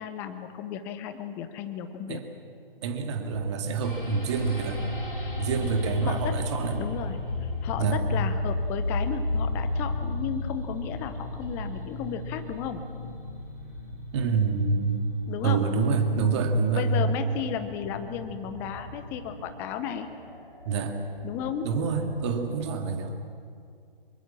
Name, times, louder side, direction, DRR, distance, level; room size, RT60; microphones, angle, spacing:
voice 1, 0.0-2.2 6.0-6.4 6.8-12.8 15.3-15.6 16.7-20.1 21.2-21.7, left 8 dB, 5° left, 9 dB, 0.5 m, -34 dB
voice 2, 2.8-4.8 5.4-6.9 7.8-8.0 14.1-15.1 15.4-16.9 20.6-21.0 21.6-23.2, right 5 dB, 30° right, 5 dB, 2.2 m, -27 dB
sound 1, 3.3-4.4 4.7-6.5 6.8-8.5 8.8-11.2, left 5 dB, 40° left, 2.5 m, -36 dB
sound 2, 3.8-22.5, left 1 dB, 70° left, 7.3 m, -36 dB
25.0 x 22.5 x 7.4 m, 2.4 s
figure-of-eight pair, 140°, 29 cm